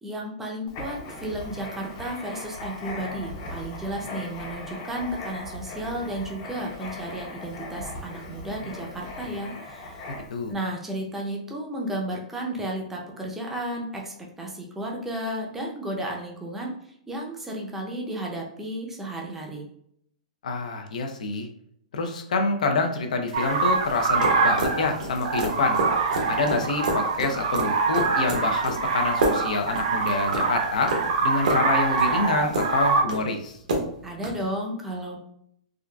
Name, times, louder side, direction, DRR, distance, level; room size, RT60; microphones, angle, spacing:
voice 1, 0.0-10.0 10.5-16.7 17.1-19.7 34.0-35.2, right 1 dB, 5° right, -1 dB, 0.5 m, -33 dB
Writing, 0.7-10.5, left 2 dB, 40° left, 0.7 m, -38 dB
voice 2, 10.1-10.5 20.4-21.5 21.9-25.8 26.3-30.9 31.2-33.6, left 3 dB, 80° left, 5 dB, 0.5 m, -27 dB
sound 1, 23.3-33.0, right 4 dB, 65° right, 0.4 m, -25 dB
sound 2, 23.9-34.4, right 2 dB, 85° right, 0.8 m, -30 dB
3.6 x 2.4 x 2.2 m, 0.70 s
hypercardioid pair, 150°, 4 cm